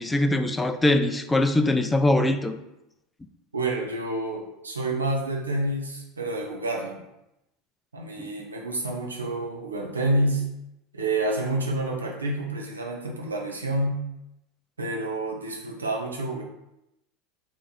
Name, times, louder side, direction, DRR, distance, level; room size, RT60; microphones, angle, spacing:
voice 1, 0.0-2.6 8.2-8.3, left 1 dB, 15° left, 8 dB, 0.3 m, -22 dB
voice 2, 3.5-7.0 7.9-10.4 10.9-14.0 14.8-16.4, right 2 dB, 90° right, 0 dB, 0.6 m, -28 dB
3.0 x 2.5 x 4.0 m, 0.88 s
hypercardioid pair, 80°, 0 cm